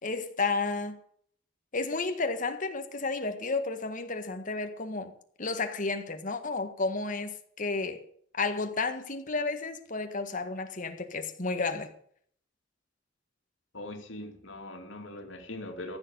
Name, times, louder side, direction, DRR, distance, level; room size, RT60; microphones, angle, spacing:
voice 1, 0.0-1.0 1.7-5.1 5.4-8.0 8.4-11.9, left 3 dB, 45° left, 1.6 m, -32 dB
voice 2, 13.7-16.0, left 1 dB, 85° left, 2.7 m, -41 dB
15.0 x 7.1 x 9.2 m
head